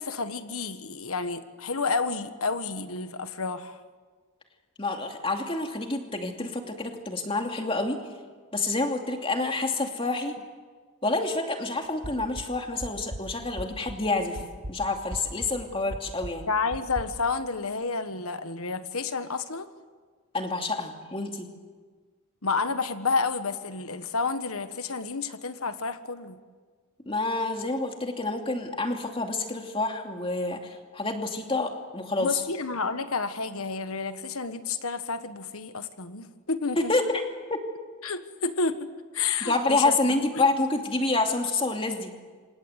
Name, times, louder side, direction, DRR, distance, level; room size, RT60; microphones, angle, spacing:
voice 1, 0.0-3.8 16.5-19.7 22.4-26.4 32.2-36.9 38.0-40.5, left 4 dB, 75° left, 10 dB, 1.4 m, -30 dB
voice 2, 4.8-8.0 8.5-10.4 11.0-14.4 14.7-16.5 20.3-21.5 27.1-32.4 36.8-37.2 37.5-37.6 39.4-42.1, left 2 dB, 25° left, 3 dB, 2.6 m, -28 dB
sound 1, 12.0-14.1 14.4-17.0, equal, 65° right, 3.0 m, -39 dB
28.0 x 26.5 x 8.1 m, 1.5 s
head